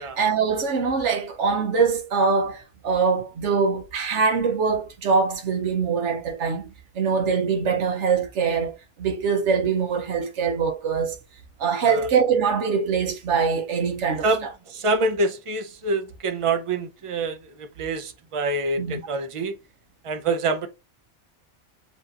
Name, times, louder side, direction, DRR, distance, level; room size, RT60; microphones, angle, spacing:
voice 1, 0.0-11.2 11.6-14.3 18.8-19.0, right 5 dB, 75° right, 1.1 m, -23 dB
voice 2, 14.2-19.6 20.0-20.7, right 3 dB, 35° right, 0.5 m, -26 dB
7.1 x 2.8 x 2.5 m
omnidirectional pair, 1.2 m